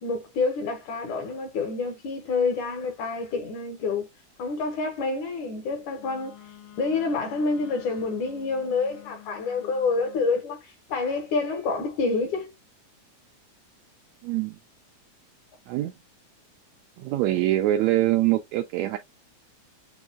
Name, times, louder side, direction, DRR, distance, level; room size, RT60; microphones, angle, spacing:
voice 1, 0.0-4.1 4.4-6.4 6.8-12.5, left 4 dB, 75° left, 2.5 m, -28 dB
Wind instrument woodwind instrument, 6.0-10.4, left 12 dB, 90° left, 2.6 m, -48 dB
voice 2, 14.2-14.6 15.7-15.9 17.0-19.0, right 15 dB, 80° right, 1.6 m, -24 dB
7.0 x 2.4 x 2.2 m
omnidirectional pair, 3.6 m